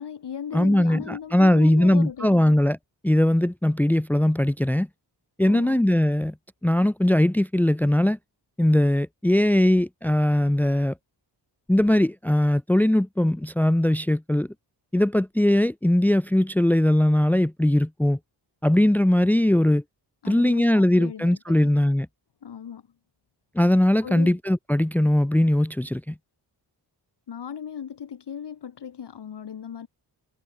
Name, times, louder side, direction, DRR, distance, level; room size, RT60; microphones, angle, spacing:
voice 1, 0.0-2.6 5.4-5.8 20.2-21.7 22.4-22.8 24.0-24.4 27.3-29.9, left 8 dB, 75° left, 3.9 m, -37 dB
voice 2, 0.5-2.8 3.0-4.9 5.4-6.3 6.6-8.2 8.6-10.9 11.7-14.5 14.9-18.2 18.6-19.8 20.3-22.1 23.5-26.1, left 1 dB, 5° left, 0.8 m, -20 dB
wide cardioid pair, 155°, 42 cm